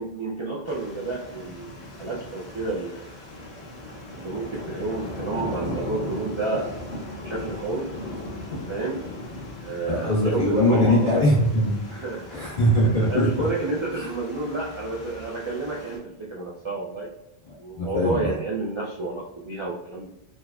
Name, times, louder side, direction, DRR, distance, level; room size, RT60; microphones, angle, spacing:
voice 1, 0.0-3.2 4.1-6.7 7.2-8.0 8.7-9.1 9.6-11.3 11.9-12.3 13.0-17.1 17.6-20.2, right 3 dB, 45° right, -4 dB, 0.3 m, -30 dB
sound 1, 0.7-16.0, left 1 dB, 70° left, 1.1 m, -38 dB
voice 2, 9.9-12.0 12.3-13.3 13.9-14.1 17.8-18.3, left 1 dB, 30° left, -9 dB, 1.5 m, -21 dB
3.8 x 2.2 x 2.3 m, 0.91 s
omnidirectional pair, 1.1 m